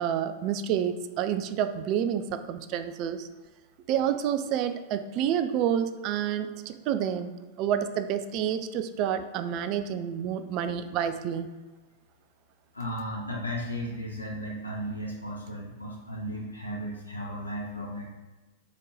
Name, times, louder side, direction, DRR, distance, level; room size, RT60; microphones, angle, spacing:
voice 1, 0.0-3.3 3.9-11.5, right 9 dB, 45° right, 10 dB, 0.5 m, -29 dB
voice 2, 12.7-18.1, equal, 90° left, -3 dB, 0.9 m, -35 dB
6.4 x 3.7 x 4.2 m, 1.2 s
figure-of-eight pair, 95°, 0 cm